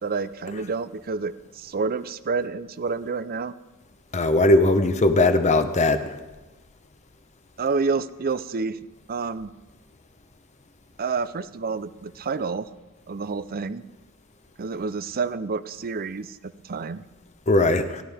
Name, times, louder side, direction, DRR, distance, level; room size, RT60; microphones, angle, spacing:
voice 1, 0.0-3.5 7.6-8.8 9.1-9.5 11.0-12.7 13.1-13.8 14.6-17.0, right 4 dB, 45° right, 15 dB, 0.5 m, -29 dB
voice 2, 4.1-6.0 17.5-18.0, left 2 dB, 30° left, 9 dB, 0.9 m, -19 dB
29.5 x 11.5 x 3.5 m, 1.1 s
head